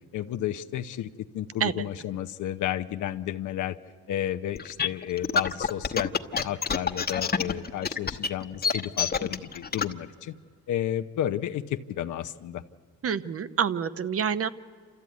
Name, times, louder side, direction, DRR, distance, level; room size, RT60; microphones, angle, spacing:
voice 1, 0.1-1.1 1.3-3.8 4.1-6.1 6.4-10.3 10.7-12.6, left 11 dB, 75° left, 7 dB, 0.8 m, -32 dB
sound 1, 4.6-9.9, left 5 dB, 30° left, 1.1 m, -27 dB
voice 2, 13.0-14.5, right 7 dB, 50° right, 14 dB, 1.0 m, -27 dB
28.0 x 14.0 x 9.4 m, 2.1 s
cardioid pair, 90°, 30 cm